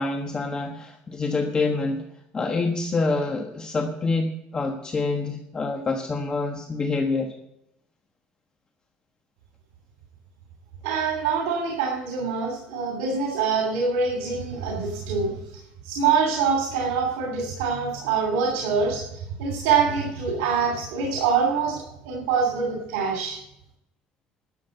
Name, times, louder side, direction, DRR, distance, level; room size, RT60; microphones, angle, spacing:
voice 1, 0.0-2.0 2.3-7.3, left 3 dB, 25° left, 4 dB, 1.2 m, -26 dB
voice 2, 10.8-15.3 15.8-23.4, right 5 dB, 90° right, 1 dB, 2.8 m, -25 dB
12.0 x 7.5 x 7.8 m, 0.82 s
cardioid pair, 110°, 3 cm